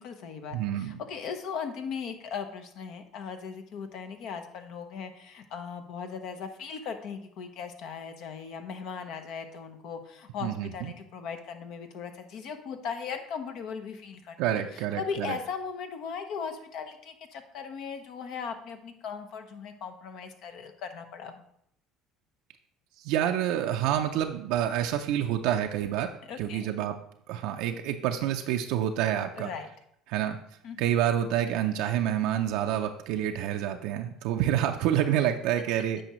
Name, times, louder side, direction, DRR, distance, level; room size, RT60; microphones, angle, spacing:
voice 1, 0.0-14.4 14.7-21.4 26.3-26.7 29.4-29.7 30.6-30.9, left 6 dB, 65° left, 7 dB, 0.9 m, -38 dB
voice 2, 0.5-1.0 10.4-10.9 14.4-15.4 23.0-26.1 26.4-27.0 27.3-29.5 30.1-30.4 30.8-36.0, right 11 dB, 75° right, 4 dB, 0.4 m, -28 dB
8.9 x 4.9 x 3.0 m, 0.71 s
supercardioid pair, 85°, 0 cm